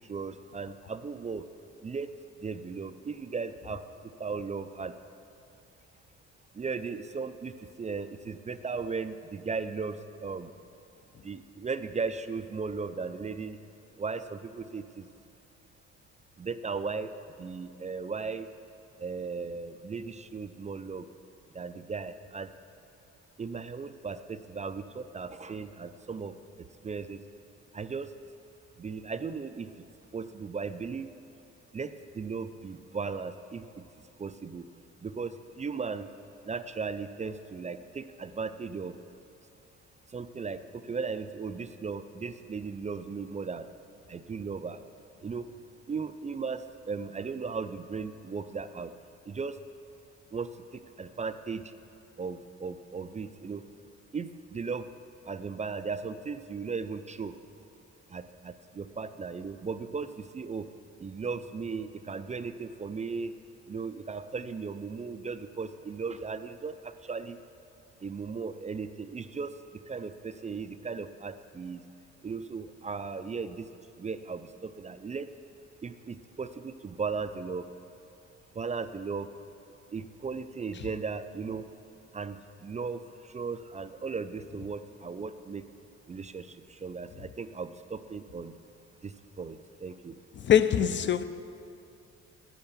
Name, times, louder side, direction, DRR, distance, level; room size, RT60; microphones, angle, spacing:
voice 1, 0.1-1.4 1.8-2.1 2.4-3.8 4.2-4.9 6.5-10.5 11.2-13.6 13.9-15.1 16.4-17.1 17.4-18.5 19.0-21.1 21.5-22.5 23.4-26.3 26.8-27.2 27.7-28.1 28.8-29.7 30.1-31.1 31.7-33.8 34.2-34.6 35.0-36.1 36.5-38.9 40.1-43.7 44.1-44.8 45.2-45.5 45.9-48.9 49.3-49.6 50.3-51.6 52.2-53.6 54.1-54.9 55.3-57.3 58.1-60.7 61.0-63.3 63.7-67.4 68.0-69.5 69.9-71.8 72.2-73.7 74.0-75.3 75.8-77.6 78.6-79.3 79.9-81.7 82.1-85.7 86.1-88.5 89.0-90.2, right 5 dB, 25° right, 0.4 m, -36 dB
voice 2, 90.4-91.2, left 9 dB, 40° left, 0.5 m, -23 dB
9.2 x 8.0 x 6.9 m
cardioid pair, 90°, 30 cm